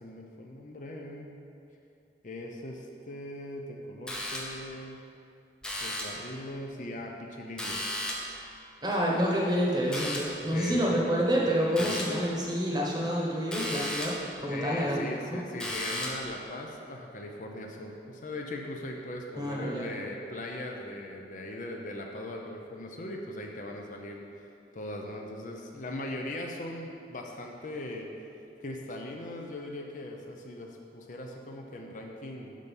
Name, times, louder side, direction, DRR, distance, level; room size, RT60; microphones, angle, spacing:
voice 1, 0.0-1.4 2.2-5.0 5.8-7.8 10.5-11.0 11.8-11.9 14.5-28.1 28.6-32.6, left 1 dB, 45° left, 1 dB, 0.6 m, -40 dB
sound 1, 4.1-4.7 5.6-6.3 7.6-8.4 9.9-10.5 11.8-12.3 13.5-14.3 15.6-16.3, left 1 dB, 5° left, 0.6 m, -35 dB
voice 2, 8.8-15.4 19.4-19.9, equal, 20° right, -3 dB, 1.1 m, -28 dB
6.3 x 5.4 x 5.3 m, 2.6 s
head